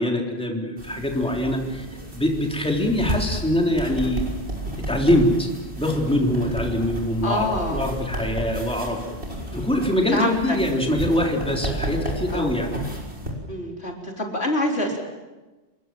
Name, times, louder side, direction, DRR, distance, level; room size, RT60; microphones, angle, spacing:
voice 1, 0.0-1.9 2.1-4.2 4.8-5.5 5.8-9.0 9.5-12.7, left 1 dB, 5° left, 0 dB, 3.6 m, -23 dB
sound 1, 0.8-13.3, right 1 dB, 65° right, 6.1 m, -32 dB
voice 2, 7.2-7.9 9.5-9.7 10.1-10.6 12.3-12.5 13.5-15.0, left 1 dB, 70° left, 0 dB, 4.4 m, -26 dB
28.5 x 22.0 x 7.7 m, 1.2 s
omnidirectional pair, 1.2 m